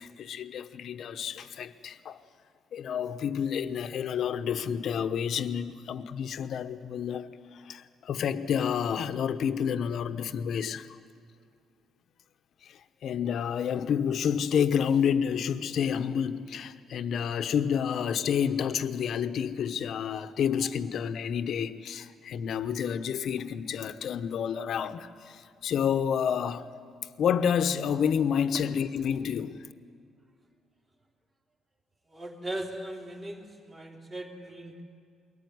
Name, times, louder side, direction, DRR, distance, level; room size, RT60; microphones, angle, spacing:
voice 1, 0.0-2.2 2.7-10.9 12.6-26.7 27.2-29.6, left 8 dB, 55° left, 1.0 m, -29 dB
voice 2, 32.1-34.8, right 1 dB, 25° right, 3.1 m, -38 dB
22.5 x 19.5 x 9.6 m
cardioid pair, 140°, 0 cm